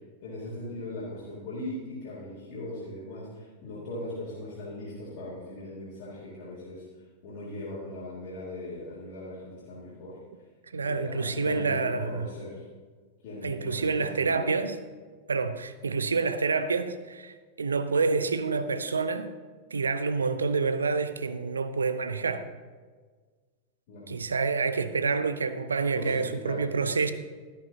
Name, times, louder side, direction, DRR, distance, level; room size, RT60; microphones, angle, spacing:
voice 1, 0.2-6.8 7.2-10.2 10.8-12.6 13.2-14.4 23.9-24.1 25.9-26.6, left 1 dB, 50° left, 3.2 m, -39 dB
voice 2, 10.7-12.3 13.4-14.8 15.3-19.3 19.7-22.5 24.1-27.1, right 4 dB, 75° right, 0.6 m, -28 dB
13.0 x 11.5 x 2.8 m
figure-of-eight pair, 90°, 0 cm